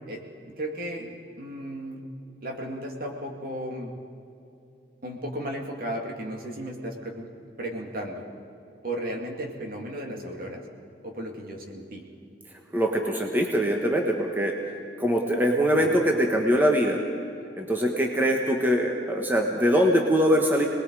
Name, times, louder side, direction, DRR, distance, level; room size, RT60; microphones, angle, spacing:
voice 1, 0.1-2.0 2.4-3.9 5.0-7.3 7.6-8.2 8.8-10.6 11.0-12.0 15.7-16.0, right 1 dB, 55° right, 1 dB, 2.7 m, -35 dB
voice 2, 12.7-14.5 15.0-17.0 17.5-20.7, equal, 10° right, 1 dB, 1.4 m, -23 dB
27.0 x 20.5 x 4.9 m, 2.6 s
head